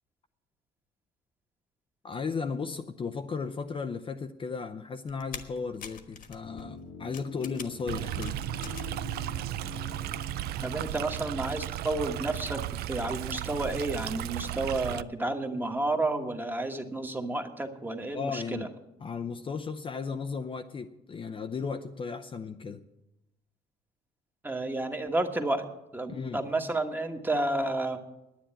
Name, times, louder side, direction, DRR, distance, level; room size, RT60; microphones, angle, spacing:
voice 1, 2.0-8.4 18.1-18.7 19.0-22.8 26.1-26.4, left 5 dB, 30° left, 7 dB, 0.6 m, -35 dB
sound 1, 5.1-9.0 9.3-10.1 10.4-10.6, left 7 dB, 55° left, 1.4 m, -45 dB
sound 2, 6.4-12.4 12.7-12.8, left 6 dB, 90° left, 1.7 m, -47 dB
Stream, 7.9-15.0, right 14 dB, 70° right, 0.4 m, -35 dB
voice 2, 10.6-12.6 12.9-18.7 24.4-25.7 25.9-28.0, right 2 dB, 10° right, 5 dB, 1.3 m, -31 dB
10.0 x 9.3 x 8.7 m, 0.92 s
cardioid pair, 110°, 17 cm